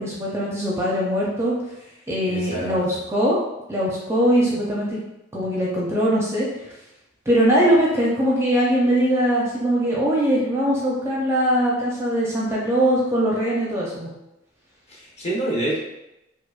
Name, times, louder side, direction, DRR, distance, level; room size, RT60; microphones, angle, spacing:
voice 1, 0.0-1.5 2.1-3.4 3.7-5.0 5.3-6.5 7.3-14.1, equal, 15° right, -5 dB, 0.5 m, -21 dB
voice 2, 2.2-2.8 14.9-15.8, right 1 dB, 35° left, -5 dB, 0.9 m, -27 dB
4.7 x 2.1 x 2.4 m, 0.91 s
head